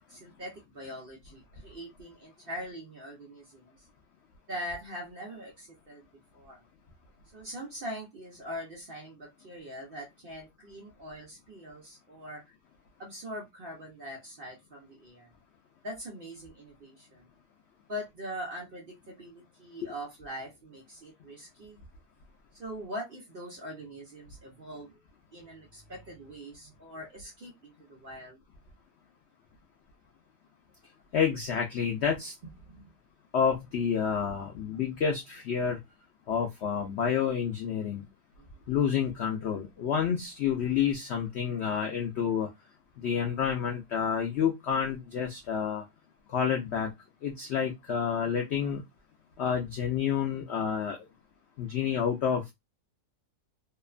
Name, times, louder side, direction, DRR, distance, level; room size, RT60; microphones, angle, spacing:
voice 1, 0.1-3.9 4.5-6.1 6.3-6.6 7.3-12.5 13.0-15.3 15.8-17.3 17.9-21.8 22.5-25.0 25.3-28.4 32.7-32.9 38.4-38.6, equal, 50° right, 0.7 m, -42 dB
voice 2, 31.1-32.3 33.3-35.8 36.3-38.0 38.7-42.5 43.0-45.8 46.3-46.9 47.2-48.8 49.4-51.0 51.6-52.5, left 7 dB, 85° left, 0.5 m, -29 dB
2.8 x 2.1 x 2.3 m
omnidirectional pair, 1.7 m